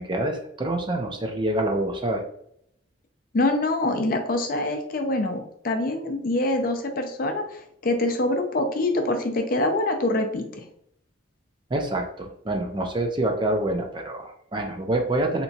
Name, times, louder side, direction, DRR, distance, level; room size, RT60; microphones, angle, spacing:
voice 1, 0.0-2.2 11.7-15.4, right 1 dB, 25° right, 3 dB, 0.4 m, -26 dB
voice 2, 3.3-10.7, left 2 dB, 45° left, 5 dB, 0.5 m, -25 dB
3.3 x 2.9 x 2.7 m, 0.71 s
head